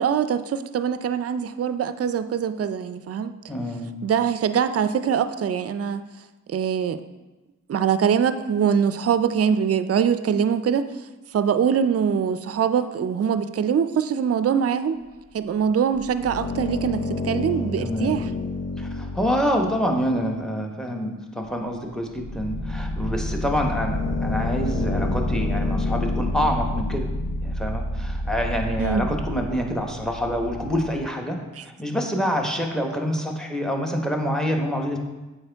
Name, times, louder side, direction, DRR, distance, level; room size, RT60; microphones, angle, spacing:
voice 1, 0.0-3.3 4.0-6.0 6.5-7.0 7.7-10.9 11.3-15.0 15.3-18.3 28.8-29.1 31.6-31.7, right 7 dB, 50° right, 12 dB, 0.4 m, -23 dB
voice 2, 3.5-4.0 17.8-18.2 18.8-27.1 27.4-31.4 31.6-35.0, equal, ahead, 2 dB, 1.1 m, -26 dB
sound 1, 15.9-20.4 21.4-21.5 21.9-31.0, left 1 dB, 75° left, 0.8 m, -28 dB
7.9 x 4.5 x 3.4 m, 1.1 s
cardioid pair, 50°, 31 cm